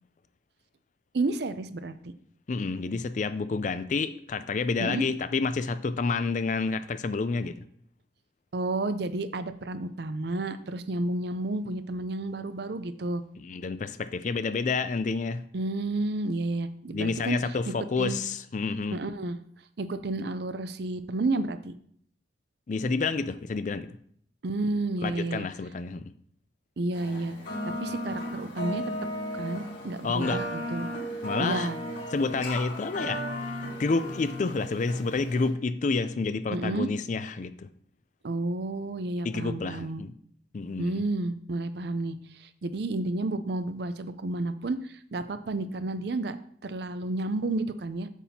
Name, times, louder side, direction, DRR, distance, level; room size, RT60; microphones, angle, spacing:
voice 1, 1.1-2.0 4.8-5.1 8.5-13.2 15.5-17.4 18.0-18.2 18.9-19.4 19.8-21.7 24.4-25.5 26.8-27.3 27.8-28.8 29.3-30.9 31.4-31.8 36.5-36.9 38.2-40.0 40.8-46.4 46.6-48.1, right 2 dB, 60° right, 11 dB, 0.5 m, -31 dB
voice 2, 2.5-7.6 13.4-15.4 16.9-19.0 22.7-23.9 25.0-26.1 30.0-30.4 31.2-31.7 32.1-37.7 39.2-40.1 40.5-41.0, left 4 dB, 40° left, 13 dB, 0.4 m, -29 dB
sound 1, 26.9-35.5, equal, 80° left, 2.9 m, -35 dB
8.2 x 7.5 x 2.8 m, 0.63 s
head